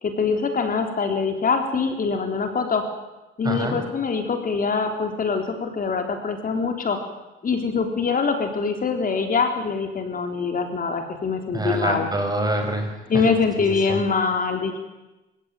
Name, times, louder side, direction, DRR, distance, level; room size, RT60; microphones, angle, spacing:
voice 1, 0.0-2.8 3.4-7.0 7.4-12.1 13.1-14.8, left 5 dB, 45° left, 5 dB, 3.7 m, -24 dB
voice 2, 3.4-3.8 11.5-13.4 13.7-14.0, right 1 dB, 20° right, 4 dB, 6.8 m, -26 dB
27.0 x 16.5 x 9.1 m, 1.1 s
cardioid pair, 90°, 20 cm